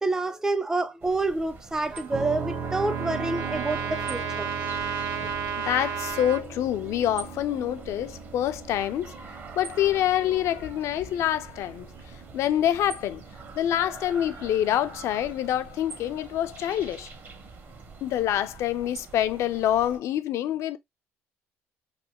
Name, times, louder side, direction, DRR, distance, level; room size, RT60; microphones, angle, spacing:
voice 1, 0.0-4.5 5.2-5.3, right 2 dB, 10° right, 0.4 m, -28 dB
sound 1, 1.0-20.0, right 4 dB, 40° right, 0.8 m, -45 dB
Trumpet, 1.9-6.4, right 7 dB, 75° right, 0.7 m, -33 dB
sound 2, 2.1-15.8, right 5 dB, 55° right, 1.4 m, -39 dB
voice 2, 5.6-9.1 9.6-11.9 12.3-13.2 13.5-17.1 18.0-20.8, left 11 dB, 65° left, 0.5 m, -26 dB
3.2 x 2.2 x 2.9 m
cardioid pair, 110°, 5 cm